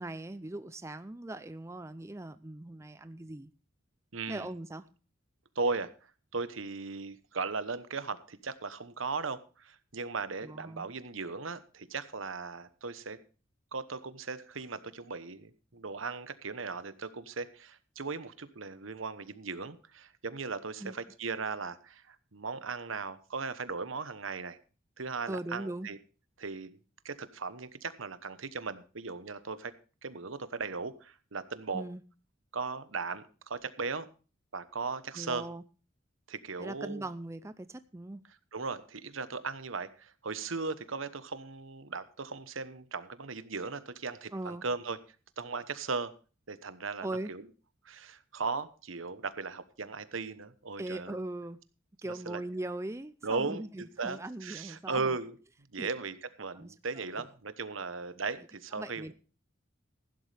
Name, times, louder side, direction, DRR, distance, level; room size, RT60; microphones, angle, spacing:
voice 1, 0.0-3.5 4.3-4.9 10.4-10.9 20.8-21.0 25.3-25.9 31.7-32.0 35.2-35.6 36.6-38.2 44.3-44.6 47.0-47.3 50.8-51.6 52.0-55.2 55.8-55.9 56.6-57.2 58.7-59.1, right 1 dB, 15° right, 12 dB, 0.5 m, -40 dB
voice 2, 4.1-4.5 5.5-5.9 6.3-13.2 13.7-24.6 25.0-26.0 26.4-26.8 27.0-29.7 30.0-31.9 32.5-34.1 34.5-35.4 36.3-37.0 38.5-45.0 45.4-46.1 46.5-47.4 47.8-51.2 52.2-52.4 53.2-55.4 55.7-59.1, right 4 dB, 80° right, 13 dB, 1.1 m, -37 dB
15.5 x 11.5 x 3.4 m, 0.35 s
head